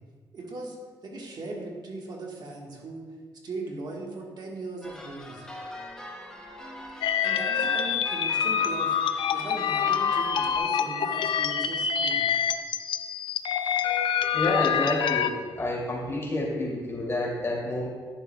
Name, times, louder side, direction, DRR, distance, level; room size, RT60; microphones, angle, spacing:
voice 1, 0.3-0.8 1.0-3.1 3.4-5.4 7.2-9.0 9.3-12.3, right 2 dB, 55° right, -1 dB, 1.4 m, -38 dB
sound 1, 4.8-10.6, left 1 dB, 10° left, 1.0 m, -42 dB
sound 2, 7.0-15.3, left 8 dB, 80° left, 0.4 m, -26 dB
voice 2, 14.3-17.9, left 1 dB, 30° left, -3 dB, 2.3 m, -29 dB
11.0 x 6.8 x 2.2 m, 1.5 s
cardioid pair, 80°, 8 cm